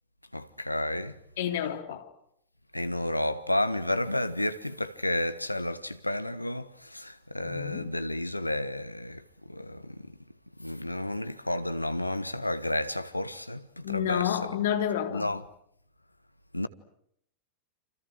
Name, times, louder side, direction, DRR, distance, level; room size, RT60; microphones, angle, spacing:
voice 1, 0.3-1.2 2.7-10.1 10.6-14.4 15.1-15.4 16.5-16.7, left 1 dB, 85° left, 1.3 m, -31 dB
voice 2, 1.4-2.1 7.4-7.9 13.8-15.3, left 10 dB, 55° left, 3.3 m, -30 dB
29.0 x 28.0 x 6.4 m
figure-of-eight pair, 90°, 0 cm